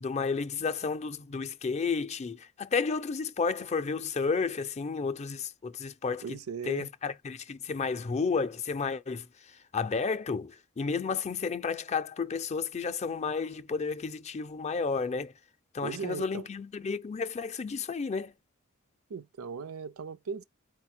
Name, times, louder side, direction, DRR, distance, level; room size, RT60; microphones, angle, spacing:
voice 1, 0.0-6.4 6.7-15.3 15.7-18.3, left 5 dB, 30° left, 0.4 m, -32 dB
voice 2, 6.2-6.9 15.8-16.5 19.1-20.4, right 6 dB, 90° right, 0.5 m, -38 dB
4.2 x 2.2 x 4.3 m
head